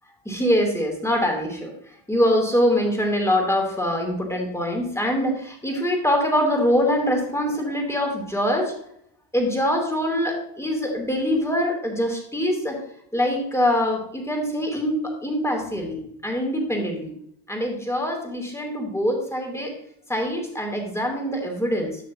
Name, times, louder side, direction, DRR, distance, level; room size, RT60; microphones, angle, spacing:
voice 1, 0.2-1.7 2.1-8.7 9.3-12.8 13.1-17.1 17.5-19.7 20.1-22.0, equal, 5° left, 2 dB, 3.1 m, -24 dB
12.0 x 6.6 x 2.8 m, 0.69 s
supercardioid pair, 75°, 44 cm